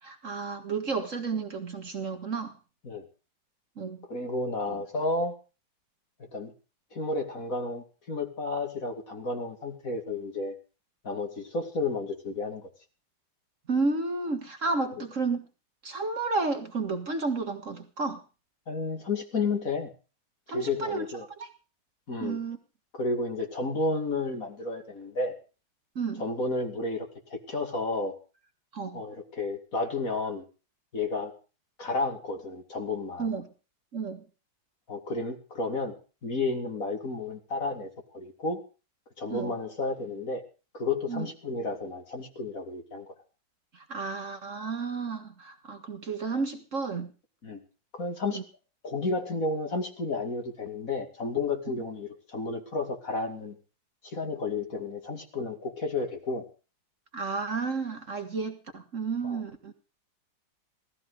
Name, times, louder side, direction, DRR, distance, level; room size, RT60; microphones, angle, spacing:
voice 1, 0.0-2.6 3.8-4.1 4.7-4.8 13.7-15.5 15.8-18.2 20.5-21.1 21.4-21.5 22.2-22.6 26.0-26.2 28.7-29.0 33.2-33.5 33.9-34.2 39.3-39.6 41.1-41.3 43.7-47.1 48.3-48.4 57.1-59.7, right 4 dB, 45° right, 7 dB, 1.7 m, -32 dB
voice 2, 4.1-5.3 6.3-6.5 6.9-10.5 11.0-12.7 18.7-19.9 20.5-21.2 22.1-22.4 22.9-25.3 26.2-28.1 28.9-30.4 30.9-31.3 31.8-33.3 34.9-35.9 36.2-38.6 39.2-40.4 40.7-43.1 47.4-47.6 47.9-48.4 48.8-53.6 54.0-56.4 59.2-59.4, left 3 dB, 45° left, 4 dB, 2.8 m, -32 dB
17.0 x 14.5 x 5.0 m, 0.35 s
omnidirectional pair, 2.0 m